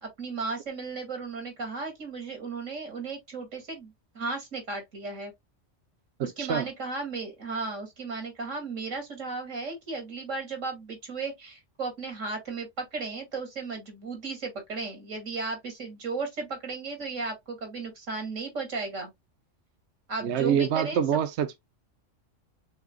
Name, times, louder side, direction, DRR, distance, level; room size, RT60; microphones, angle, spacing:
voice 1, 0.0-5.3 6.2-19.1 20.1-21.0, right 3 dB, 85° right, 2.6 m, -35 dB
voice 2, 6.2-6.7 20.2-21.6, right 8 dB, 65° right, 0.9 m, -26 dB
5.6 x 3.8 x 2.3 m
omnidirectional pair, 1.3 m